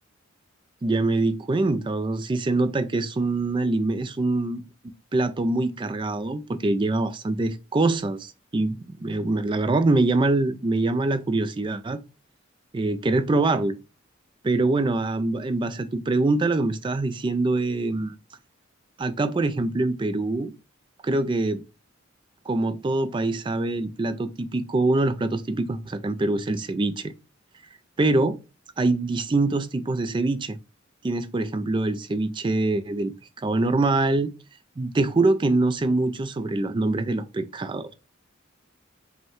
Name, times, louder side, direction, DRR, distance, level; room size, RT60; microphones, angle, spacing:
voice 1, 0.8-4.6 5.1-12.0 12.7-13.8 14.4-18.1 19.0-20.5 21.0-21.6 22.5-27.1 28.0-28.4 28.8-30.6 31.0-33.1 33.4-34.3 34.8-37.9, right 2 dB, 25° right, 0.3 m, -24 dB
5.2 x 2.2 x 3.5 m
head